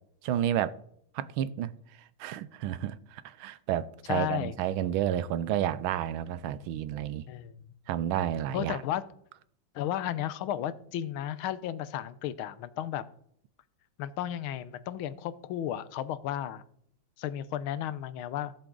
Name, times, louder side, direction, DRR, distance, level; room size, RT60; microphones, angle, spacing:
voice 1, 0.2-0.8 1.1-1.7 2.2-7.3 7.9-8.8, right 11 dB, 85° right, 1.4 m, -31 dB
voice 2, 4.1-4.5 7.3-7.5 8.5-9.0 9.7-13.0 14.0-16.6 17.2-18.5, left 11 dB, 90° left, 1.6 m, -33 dB
16.0 x 7.4 x 3.8 m
omnidirectional pair, 2.2 m